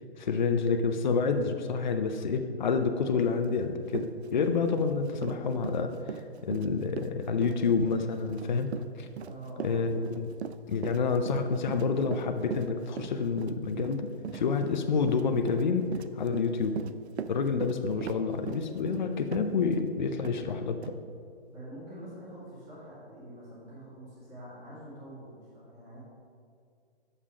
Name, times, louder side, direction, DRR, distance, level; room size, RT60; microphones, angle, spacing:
voice 1, 0.2-6.0 6.4-9.1 9.6-10.3 10.7-15.9 16.2-16.8 17.3-21.0, left 5 dB, 45° left, 7 dB, 0.5 m, -28 dB
Run, 3.5-3.6 3.9-19.9 20.2-20.4 20.8-20.9, right 8 dB, 80° right, 0.5 m, -40 dB
voice 2, 9.2-9.9 17.9-18.4 21.5-26.0, right 1 dB, 10° right, -10 dB, 1.7 m, -46 dB
6.8 x 5.7 x 4.8 m, 2.3 s
hypercardioid pair, 170°, 33 cm